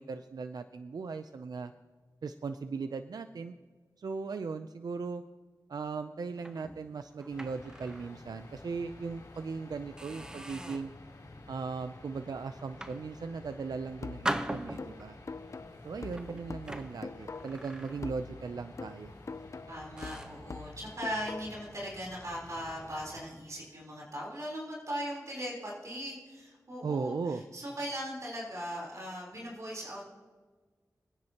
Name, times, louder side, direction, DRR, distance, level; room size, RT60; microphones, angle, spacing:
voice 1, 0.0-1.7 2.2-3.5 4.0-5.2 5.7-10.9 11.5-15.2 15.8-19.1 26.8-27.4, right 4 dB, 70° right, 9 dB, 0.5 m, -38 dB
sound 1, 6.4-8.2 8.6-8.8 9.3-9.5 10.0-11.0 11.6-11.9 12.6-13.6 14.2-15.2 16.0-18.4 18.7-18.9 19.5-19.6 20.0-20.5, right 1 dB, 10° right, 0.8 m, -41 dB
sound 2, 7.3-23.2, left 2 dB, 70° left, 3.5 m, -51 dB
sound 3, 14.0-17.7 18.0-21.7, left 4 dB, 45° left, 0.5 m, -44 dB
voice 2, 19.7-30.0, equal, 50° right, -4 dB, 3.9 m, -39 dB
26.0 x 9.7 x 2.9 m, 1.4 s
wide cardioid pair, 65°, 7 cm